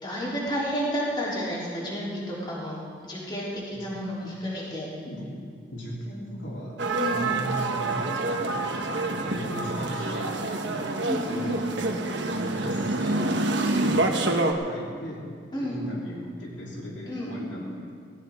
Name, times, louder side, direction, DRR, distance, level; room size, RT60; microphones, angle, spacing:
voice 1, 0.0-2.8 3.0-4.0 4.5-4.9 7.0-7.3 11.0-11.5 15.5-15.8 17.1-17.3, equal, 25° left, -6 dB, 3.4 m, -31 dB
voice 2, 3.7-4.6 5.1-10.9 11.3-11.6 12.6-13.4 13.8-14.1 14.6-15.2 15.6-17.9, equal, 80° left, -4 dB, 3.1 m, -38 dB
sound 1, 6.8-14.5, right 2 dB, 75° right, 1.2 m, -27 dB
17.5 x 17.0 x 3.6 m, 2.2 s
head